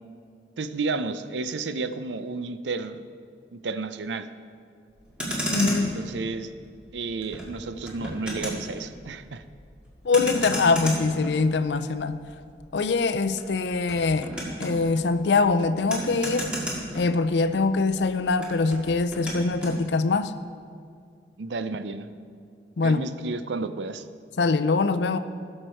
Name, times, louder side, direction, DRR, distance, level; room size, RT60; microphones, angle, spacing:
voice 1, 0.6-3.0 3.5-4.3 5.9-6.5 6.9-9.4 21.4-22.1 22.8-24.1, right 3 dB, 85° right, 11 dB, 0.5 m, -31 dB
Motor vehicle (road), 5.0-17.6 17.9-19.8, equal, 5° right, 1.9 m, -34 dB
voice 2, 5.5-6.0 10.0-12.2 12.7-14.3 14.6-16.5 16.9-20.3 22.8-23.1 24.4-25.2, left 3 dB, 80° left, 11 dB, 0.5 m, -23 dB
17.0 x 6.6 x 4.5 m, 2.3 s
head